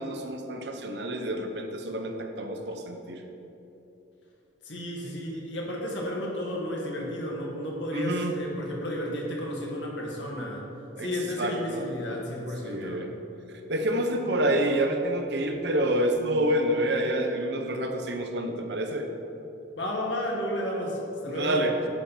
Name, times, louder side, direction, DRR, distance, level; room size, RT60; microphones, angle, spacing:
voice 1, 0.0-3.2 7.9-8.4 11.0-11.1 11.4-11.9 12.6-13.1 13.7-19.0 21.3-21.8, right 1 dB, 60° right, 4 dB, 0.9 m, -28 dB
voice 2, 4.6-10.7 11.0-13.0 19.7-21.6, equal, 65° left, -2 dB, 1.9 m, -32 dB
10.5 x 5.8 x 5.8 m, 2.9 s
head